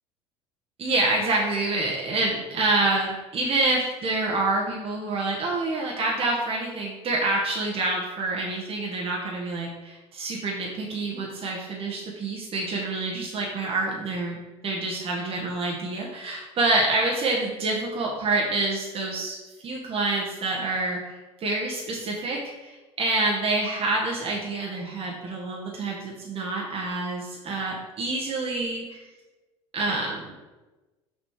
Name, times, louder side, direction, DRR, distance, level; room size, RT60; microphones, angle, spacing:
voice 1, 0.8-14.4 14.6-29.0 29.7-30.3, right 2 dB, 40° right, -2 dB, 1.4 m, -27 dB
6.3 x 4.2 x 4.9 m, 1.1 s
hypercardioid pair, 70°, 15 cm